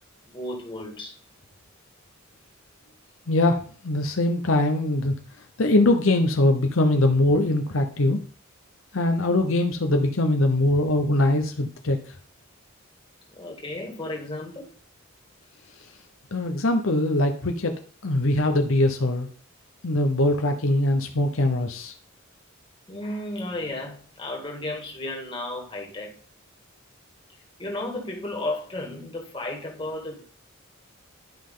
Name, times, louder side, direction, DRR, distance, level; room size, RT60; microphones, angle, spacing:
voice 1, 0.3-1.1 13.3-14.7 22.9-26.1 27.6-30.2, left 1 dB, 25° left, 2.1 m, -33 dB
voice 2, 3.3-5.1 5.6-8.2 8.9-12.0 16.3-17.7 18.0-19.3 19.8-21.9, left 1 dB, 70° left, 0.9 m, -22 dB
10.5 x 5.3 x 3.8 m
head